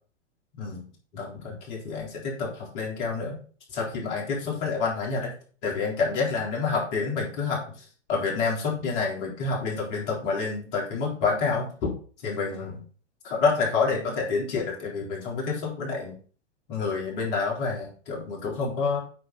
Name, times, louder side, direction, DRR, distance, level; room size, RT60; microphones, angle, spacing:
voice 1, 1.1-3.4 3.7-5.3 5.6-11.9 12.2-12.8 13.2-16.1 16.7-19.0, left 4 dB, 45° left, -2 dB, 3.8 m, -28 dB
8.7 x 6.1 x 4.1 m, 0.41 s
figure-of-eight pair, 110°, 36 cm